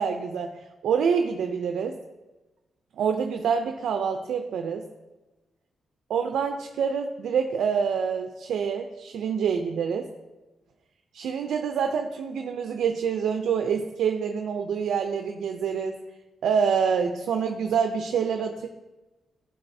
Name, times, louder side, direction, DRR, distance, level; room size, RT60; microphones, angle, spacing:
voice 1, 0.0-2.0 3.0-4.9 6.1-10.1 11.1-16.0 16.4-18.7, right 6 dB, 85° right, 6 dB, 0.4 m, -26 dB
13.0 x 4.6 x 2.7 m, 1.1 s
cardioid pair, 115°, 0 cm